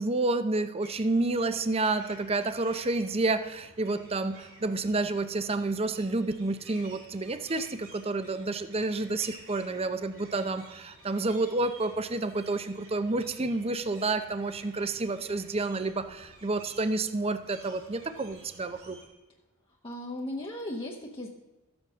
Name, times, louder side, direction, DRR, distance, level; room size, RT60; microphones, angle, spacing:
voice 1, 0.0-19.0, right 2 dB, 30° right, 11 dB, 0.6 m, -29 dB
sound 1, 0.8-19.1, right 2 dB, 75° right, 3.9 m, -53 dB
voice 2, 19.8-21.3, left 1 dB, 25° left, -1 dB, 0.9 m, -36 dB
13.5 x 7.9 x 6.2 m, 1.1 s
head